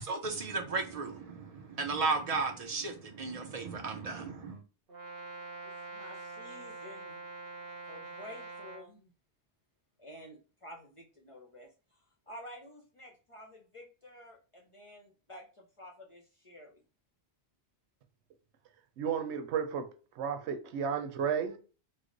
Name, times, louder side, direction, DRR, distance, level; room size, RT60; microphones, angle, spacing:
voice 1, 0.0-4.6, right 4 dB, 45° right, 0.5 m, -34 dB
Brass instrument, 4.9-8.9, right 3 dB, 65° right, 1.0 m, -45 dB
voice 2, 5.6-7.2 7.9-9.1 10.0-11.7 12.3-16.8, left 1 dB, 40° left, 0.5 m, -51 dB
voice 3, 19.0-19.9 20.1-21.6, right 7 dB, 90° right, 0.9 m, -33 dB
3.2 x 2.0 x 3.8 m
omnidirectional pair, 1.1 m